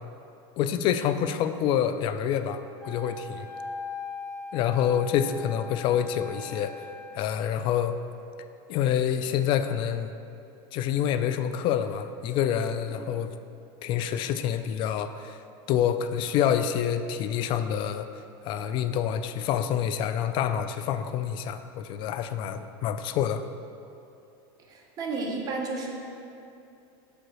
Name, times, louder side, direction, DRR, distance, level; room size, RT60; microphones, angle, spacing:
voice 1, 0.6-3.5 4.5-6.8 7.1-8.0 8.7-10.1 10.7-13.3 13.8-15.4 15.7-18.1 18.4-23.4, left 9 dB, 40° left, 10 dB, 0.3 m, -27 dB
Wind instrument woodwind instrument, 2.8-7.2, left 4 dB, 5° left, 1.6 m, -40 dB
voice 2, 24.7-25.9, right 3 dB, 30° right, 0 dB, 1.0 m, -32 dB
5.5 x 5.1 x 6.1 m, 2.7 s
supercardioid pair, 145°, 13 cm